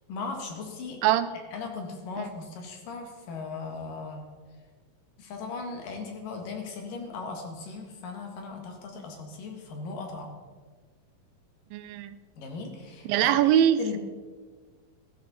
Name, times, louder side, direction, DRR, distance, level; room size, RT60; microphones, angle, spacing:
voice 1, 0.1-1.0 1.5-4.2 5.2-10.3 12.4-13.1 13.8-14.0, left 4 dB, 70° left, 3 dB, 3.4 m, -38 dB
voice 2, 11.7-12.2 13.1-14.0, right 10 dB, 80° right, 13 dB, 2.2 m, -23 dB
15.0 x 13.5 x 4.3 m, 1.5 s
omnidirectional pair, 4.2 m